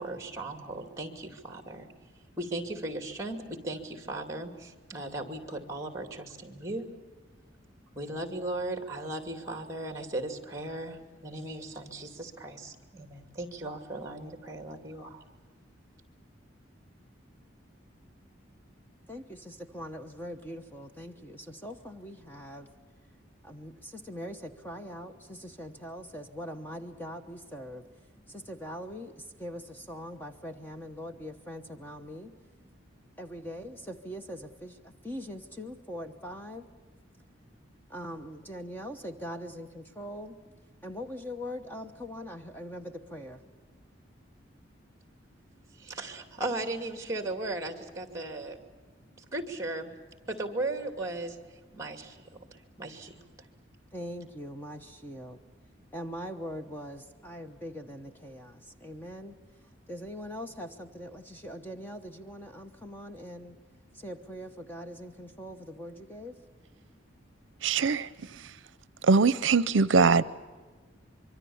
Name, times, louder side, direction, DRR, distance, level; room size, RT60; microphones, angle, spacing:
voice 1, 0.0-1.9 2.4-6.9 7.9-15.2 45.8-48.6 49.2-49.9 50.3-51.4 51.7-52.2 52.8-53.3, right 2 dB, 15° right, 2.6 m, -37 dB
voice 2, 19.1-22.7 23.4-27.9 28.3-32.3 33.2-36.7 37.9-40.4 40.8-43.4 48.1-48.2 53.9-55.4 55.9-59.4 59.9-63.6 63.9-66.4, equal, 10° left, 1.0 m, -42 dB
voice 3, 67.6-68.5 69.0-70.2, right 4 dB, 75° right, 0.6 m, -23 dB
25.0 x 24.0 x 7.1 m
head